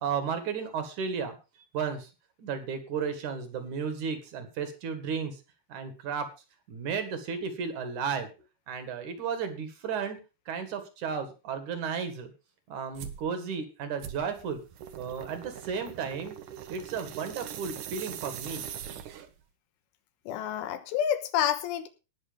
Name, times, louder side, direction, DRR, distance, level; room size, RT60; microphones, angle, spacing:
voice 1, 0.0-1.4 1.7-2.1 2.4-5.4 5.7-6.3 6.7-8.3 8.7-10.2 10.5-12.3 12.7-14.6 15.0-16.3 16.7-18.7, right 6 dB, 55° right, 2.5 m, -33 dB
sound 1, 12.9-13.2 14.0-19.4, right 9 dB, 85° right, 1.7 m, -41 dB
voice 2, 20.3-21.9, left 10 dB, 85° left, 3.6 m, -28 dB
18.5 x 6.3 x 5.1 m
omnidirectional pair, 5.4 m